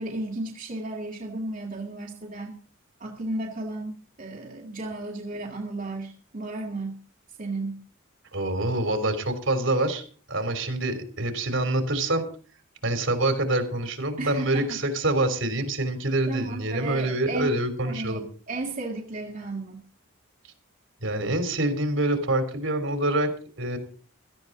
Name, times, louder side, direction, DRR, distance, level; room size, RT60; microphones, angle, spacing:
voice 1, 0.0-2.6 3.0-7.0 7.4-7.9 14.2-14.8 16.3-17.5 17.8-19.9, right 2 dB, 40° right, -2 dB, 2.3 m, -34 dB
voice 2, 8.3-10.0 10.3-12.2 12.8-18.2 21.0-23.3 23.6-23.8, right 1 dB, 65° right, 6 dB, 3.5 m, -26 dB
17.5 x 13.5 x 4.0 m, 0.41 s
head